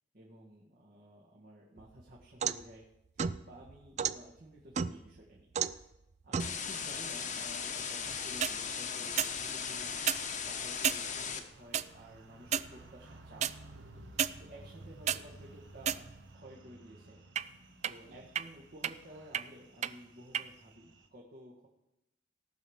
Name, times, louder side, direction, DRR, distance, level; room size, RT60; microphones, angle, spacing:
voice 1, 0.1-2.9 3.4-5.5 6.2-10.0 10.4-13.5 14.4-16.1 16.3-17.3 17.8-21.7, equal, 55° right, -4 dB, 1.7 m, -53 dB
sound 1, 1.8-2.7 3.2-4.2 4.8-5.2 5.6-5.8 6.3-6.6 8.2-8.6 9.2-9.4 9.9-10.2 10.8-11.0 11.7-11.9 12.5-12.7 13.4-13.5 14.2-14.3 14.8-15.2 15.8-16.3 17.4-17.5 17.8-17.9 18.4-18.5 18.8-18.9 19.3-19.4 19.8-19.9 20.3-20.4, right 8 dB, 40° right, 0.4 m, -32 dB
sound 2, 6.4-11.4, left 6 dB, 40° left, 1.0 m, -37 dB
sound 3, 7.2-21.1, right 2 dB, 75° right, 1.2 m, -56 dB
18.0 x 6.3 x 5.0 m, 0.89 s
head